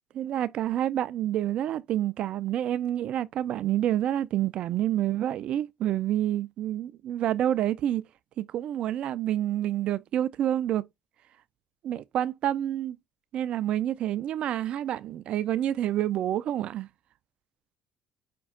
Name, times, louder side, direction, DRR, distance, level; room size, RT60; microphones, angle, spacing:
voice 1, 0.1-8.0 8.4-10.9 11.8-13.0 13.3-16.9, right 11 dB, 60° right, 0.3 m, -28 dB
5.2 x 2.3 x 3.6 m
hypercardioid pair, 60°, 2 cm